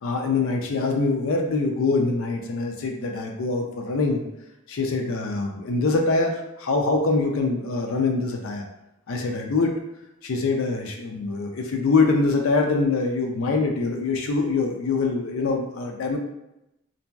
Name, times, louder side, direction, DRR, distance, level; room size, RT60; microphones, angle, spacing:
voice 1, 0.0-4.2 4.7-8.6 9.1-9.7 10.2-16.2, left 3 dB, 85° left, 2 dB, 0.4 m, -24 dB
2.9 x 2.6 x 2.2 m, 0.86 s
head